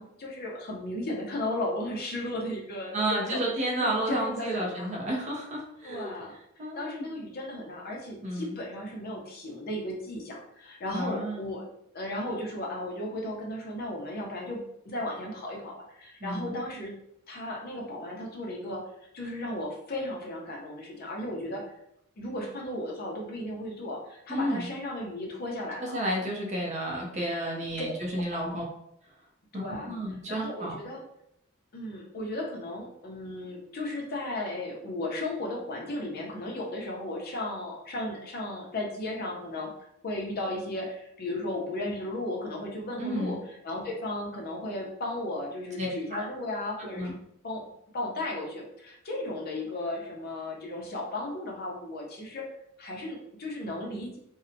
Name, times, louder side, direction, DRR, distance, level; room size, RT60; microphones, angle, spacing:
voice 1, 0.0-5.0 5.8-6.3 6.8-11.7 11.9-16.9 17.3-18.9 19.1-21.6 22.2-26.0 27.8-27.9 28.1-28.6 29.5-29.9 30.3-31.0 31.7-39.7 40.0-43.4 43.6-47.2 47.4-47.7 47.9-52.4 52.8-54.2, left 1 dB, 45° left, -1 dB, 0.5 m, -35 dB
voice 2, 2.9-6.1 6.6-7.1 8.2-8.6 10.9-11.5 16.2-16.6 24.3-24.7 25.9-28.6 29.5-30.7 43.0-43.4 45.8-46.3 47.0-47.1, right 1 dB, 35° right, -1 dB, 0.5 m, -31 dB
2.7 x 2.1 x 2.5 m, 0.76 s
head